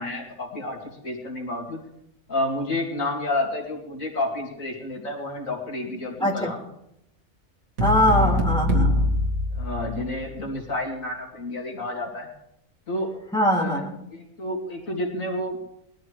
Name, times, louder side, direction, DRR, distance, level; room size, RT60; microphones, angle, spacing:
voice 1, 0.0-1.8 2.3-6.6 8.1-8.4 9.5-12.3 12.9-13.1 13.6-13.8 14.1-15.6, left 1 dB, 70° left, 0 dB, 2.8 m, -30 dB
voice 2, 6.2-6.5 7.8-9.1 13.3-13.9, equal, 5° left, -2 dB, 2.5 m, -22 dB
sound 1, 7.8-10.3, left 1 dB, 80° right, 2.7 m, -23 dB
21.0 x 13.0 x 3.2 m, 0.78 s
omnidirectional pair, 1.4 m